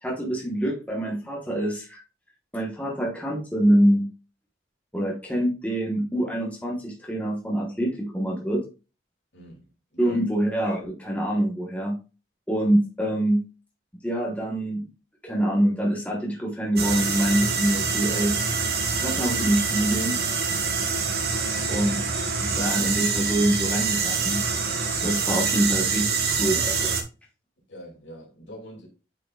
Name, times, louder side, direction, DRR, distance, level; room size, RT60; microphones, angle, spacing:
voice 1, 0.0-2.0 2.5-4.1 4.9-8.6 10.0-12.0 12.5-13.4 14.0-14.8 15.2-18.3 19.0-20.2 21.7-22.3 22.5-24.4 25.0-26.9, right 1 dB, 5° left, 1.2 m, -25 dB
voice 2, 9.3-10.2 27.7-28.9, equal, 75° left, 2.5 m, -43 dB
sound 1, 16.8-27.0, right 5 dB, 55° right, 1.1 m, -25 dB
8.6 x 4.9 x 2.3 m
head